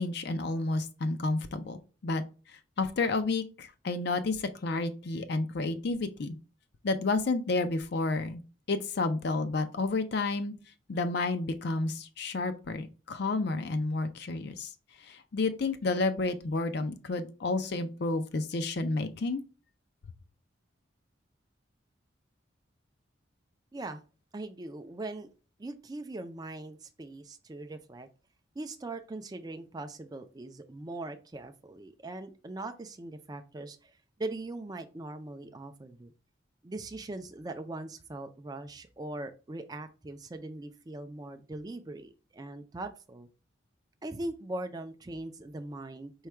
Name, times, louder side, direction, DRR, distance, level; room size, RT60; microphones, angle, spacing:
voice 1, 0.0-2.2 2.5-6.4 6.8-8.4 8.7-10.5 10.9-14.7 15.0-19.4, left 3 dB, 55° left, 0.5 m, -31 dB
voice 2, 24.3-25.3 25.6-28.1 28.6-36.1 36.6-43.3 44.0-46.3, right 2 dB, 20° right, 0.4 m, -41 dB
4.7 x 2.2 x 4.4 m
head